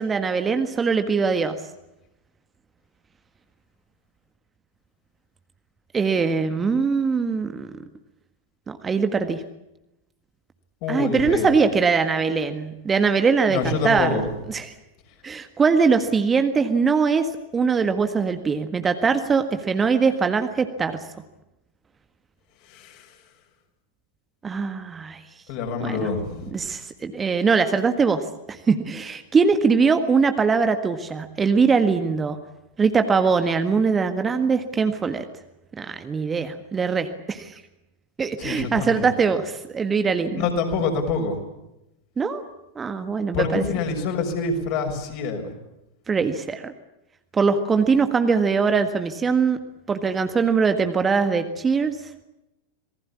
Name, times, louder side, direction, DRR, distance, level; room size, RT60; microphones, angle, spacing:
voice 1, 0.0-1.6 5.9-7.8 8.7-9.4 10.9-14.2 14.5-14.7 15.2-21.0 24.4-25.2 25.8-26.1 26.5-32.4 32.8-35.2 35.8-37.6 38.2-40.5 42.2-42.4 42.7-43.6 46.1-46.7 47.3-49.6 49.9-52.0, right 5 dB, 20° right, 8 dB, 1.6 m, -22 dB
voice 2, 10.8-11.5 13.5-14.4 22.7-23.1 25.5-26.5 38.4-39.1 40.3-41.4 43.3-45.5, left 4 dB, 45° left, 4 dB, 6.4 m, -26 dB
27.0 x 20.0 x 8.5 m, 0.92 s
figure-of-eight pair, 90°, 0 cm